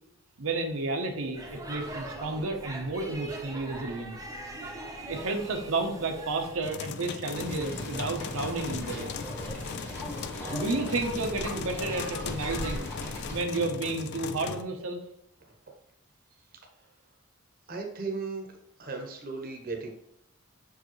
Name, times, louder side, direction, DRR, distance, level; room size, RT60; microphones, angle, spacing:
voice 1, 0.4-4.2 5.1-9.1 10.5-12.9 13.2-15.0, right 2 dB, 75° right, 4 dB, 0.9 m, -31 dB
Speech / Shout / Subway metro underground, 1.3-6.6, right 1 dB, 15° right, 0.8 m, -41 dB
sound 1, 6.6-14.6, left 6 dB, 50° left, 0.4 m, -39 dB
sound 2, 7.3-13.4, equal, 10° left, 1.2 m, -37 dB
voice 2, 17.7-18.5 18.8-19.9, right 4 dB, 45° right, 2 dB, 0.9 m, -35 dB
6.6 x 4.7 x 3.1 m, 0.79 s
head